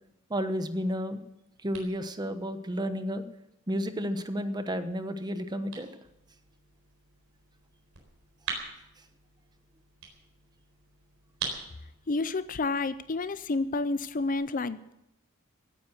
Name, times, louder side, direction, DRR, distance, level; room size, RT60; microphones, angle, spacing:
voice 1, 0.3-1.2 1.6-3.2 3.7-5.9, equal, 20° right, 9 dB, 1.0 m, -31 dB
sound 1, 0.9-14.3, right 5 dB, 85° right, 4.1 m, -45 dB
voice 2, 12.1-14.9, left 3 dB, 40° left, 14 dB, 0.5 m, -30 dB
16.5 x 9.5 x 7.8 m, 0.85 s
head